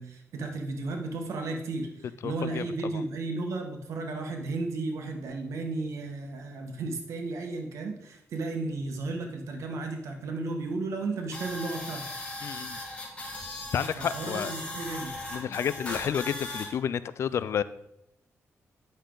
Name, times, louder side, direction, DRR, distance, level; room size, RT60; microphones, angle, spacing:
voice 1, 0.0-12.1 14.0-15.2, right 3 dB, 80° right, 3 dB, 1.5 m, -34 dB
voice 2, 2.2-2.6 2.9-3.0 12.4-12.8 13.7-14.5 15.3-17.6, left 8 dB, 65° left, 16 dB, 0.4 m, -30 dB
sound 1, 11.3-16.7, left 2 dB, 25° left, 2.5 m, -38 dB
9.4 x 6.4 x 3.9 m, 0.81 s
cardioid pair, 120°, 5 cm